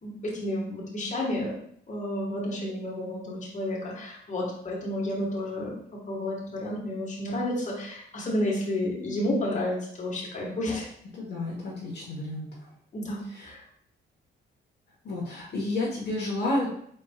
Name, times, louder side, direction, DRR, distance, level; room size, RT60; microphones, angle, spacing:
voice 1, 0.0-1.6 1.9-5.8 6.1-10.9 12.9-13.6, left 1 dB, 40° left, -3 dB, 1.5 m, -31 dB
voice 2, 11.2-12.5 13.3-13.5 15.0-16.7, left 2 dB, 60° left, -5 dB, 1.3 m, -30 dB
4.5 x 4.4 x 2.4 m, 0.66 s
cardioid pair, 90°, 20 cm